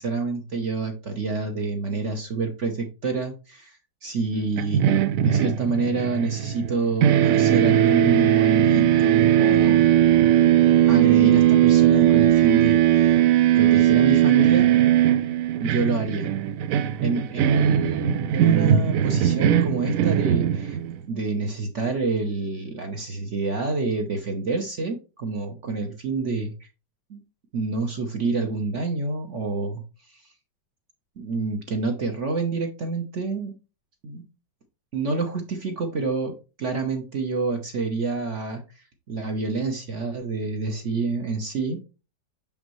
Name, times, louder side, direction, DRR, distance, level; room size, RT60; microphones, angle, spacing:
voice 1, 0.0-9.8 10.9-13.2 13.5-14.7 15.6-16.3 17.0-20.8 21.1-26.7 27.1-27.2 27.5-30.2 31.2-33.5 34.0-34.2 34.9-41.8, right 3 dB, 50° right, 4 dB, 0.9 m, -28 dB
sound 1, 4.6-6.7 7.0-21.0, right 11 dB, 85° right, 0.7 m, -19 dB
6.3 x 5.3 x 3.1 m, 0.31 s
omnidirectional pair, 2.0 m